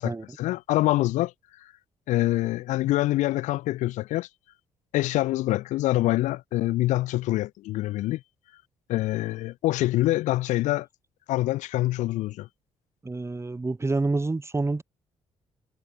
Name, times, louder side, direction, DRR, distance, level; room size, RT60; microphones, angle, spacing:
voice 1, 0.0-1.3 2.1-4.3 4.9-8.2 8.9-10.9 11.3-12.5, left 17 dB, 90° left, 2.2 m, -25 dB
voice 2, 13.0-14.8, right 3 dB, 20° right, 3.8 m, -27 dB
cardioid pair, 75°, 12 cm